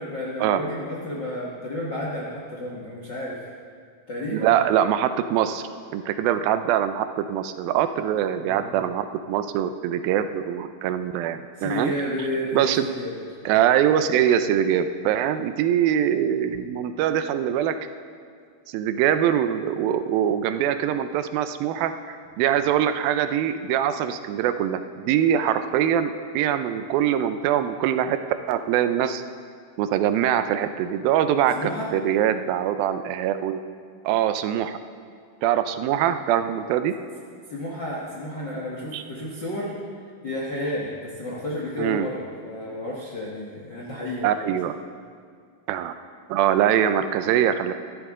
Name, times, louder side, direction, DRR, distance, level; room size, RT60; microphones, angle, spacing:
voice 1, 0.0-3.4 4.1-4.6 8.3-8.8 11.6-13.8 31.5-31.9 37.5-39.7 40.2-44.6, left 1 dB, 60° left, -5 dB, 1.2 m, -32 dB
voice 2, 4.3-5.6 5.9-11.9 12.5-12.9 13.5-17.8 18.7-28.2 28.5-29.2 29.8-33.6 34.0-34.8 35.4-36.9 38.9-39.0 41.8-42.1 44.2-44.8 45.7-45.9 46.3-47.7, right 10 dB, 85° right, 10 dB, 2.4 m, -23 dB
13.5 x 13.5 x 3.7 m, 2.1 s
omnidirectional pair, 4.2 m